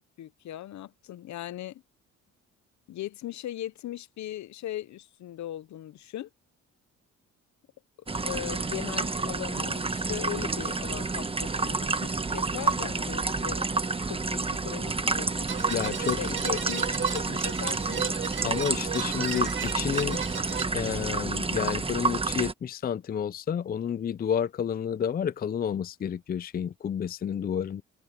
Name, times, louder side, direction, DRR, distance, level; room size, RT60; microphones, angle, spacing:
voice 1, 0.2-1.8 2.9-6.3 8.2-13.7 14.0-15.3 16.2-18.1, left 13 dB, 70° left, 0.9 m, -38 dB
sound 1, 8.1-22.5, right 3 dB, 20° right, 1.2 m, -29 dB
sound 2, 15.5-20.7, right 9 dB, 40° right, 1.0 m, -35 dB
voice 2, 15.7-16.2 18.4-20.2 20.7-27.8, left 8 dB, 30° left, 0.5 m, -30 dB
open air
cardioid pair, 90°, 30 cm